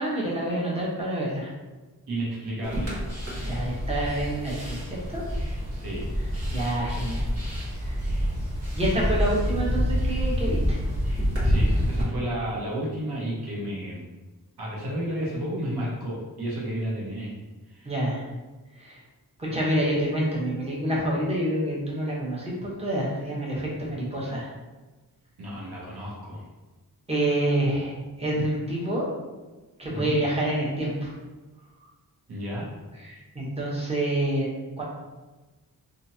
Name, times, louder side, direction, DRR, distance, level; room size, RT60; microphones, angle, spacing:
voice 1, 0.0-1.5 3.4-5.2 6.5-7.2 7.8-8.0 8.8-10.8 17.8-18.2 18.7-19.0 19.4-24.5 27.1-27.9 28.2-29.1 29.8-31.1 32.9-34.5 34.8-34.9, right 1 dB, 15° right, -6 dB, 0.9 m, -27 dB
voice 2, 2.1-3.0 5.7-6.1 11.4-14.0 14.6-17.3 17.7-17.9 25.4-26.4 29.9-30.2 32.3-32.7, right 1 dB, 90° right, -5 dB, 1.0 m, -32 dB
sound 1, 2.6-12.0, equal, 40° right, 1.4 m, -27 dB
2.9 x 2.4 x 2.7 m, 1.2 s
cardioid pair, 75°, 38 cm